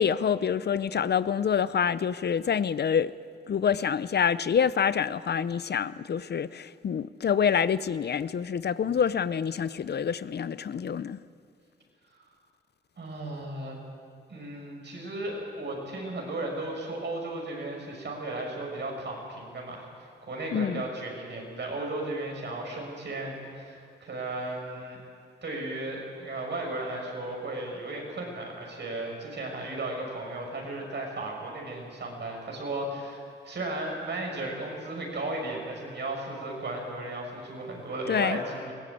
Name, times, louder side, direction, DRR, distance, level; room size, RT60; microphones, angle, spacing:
voice 1, 0.0-3.1 3.5-11.2 20.5-20.8 38.1-38.4, left 7 dB, 60° left, 0.6 m, -26 dB
voice 2, 13.0-13.8 14.3-25.0 25.4-38.7, right 2 dB, 65° right, 6.3 m, -35 dB
20.5 x 17.5 x 8.6 m
cardioid pair, 65°, 19 cm